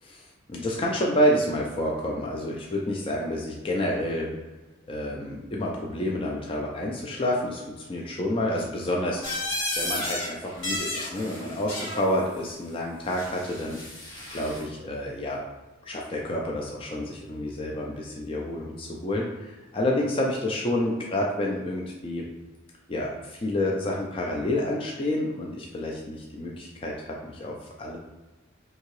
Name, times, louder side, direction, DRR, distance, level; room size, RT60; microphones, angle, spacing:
voice 1, 0.0-4.3 4.9-9.2 9.8-15.4 15.8-22.3 22.9-28.0, left 1 dB, 25° left, -2 dB, 0.3 m, -29 dB
sound 1, 9.2-10.3 10.6-12.1 13.1-14.6, left 1 dB, 70° left, 1.2 m, -32 dB
3.4 x 2.8 x 3.1 m, 1.2 s
head